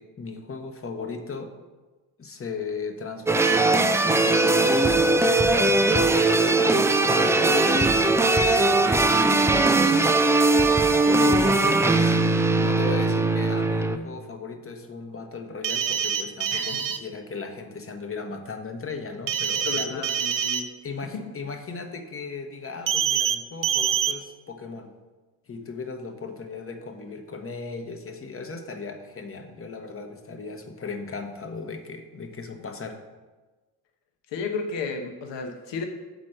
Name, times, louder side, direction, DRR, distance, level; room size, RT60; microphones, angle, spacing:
voice 1, 0.0-1.5 2.2-6.7 7.0-8.1 9.1-10.1 11.2-12.2 12.5-20.0 20.8-24.9 25.5-33.0, left 4 dB, 25° left, 6 dB, 1.1 m, -36 dB
sound 1, 3.3-14.0, right 2 dB, 5° right, 0.3 m, -20 dB
sound 2, 15.6-17.0 19.3-20.6 22.9-23.4 23.6-24.1, right 8 dB, 45° right, 0.7 m, -25 dB
voice 2, 19.6-20.7 21.1-21.2 34.3-35.9, left 4 dB, 60° left, 4 dB, 1.1 m, -33 dB
6.1 x 4.3 x 6.3 m, 1.3 s
hypercardioid pair, 55°, 48 cm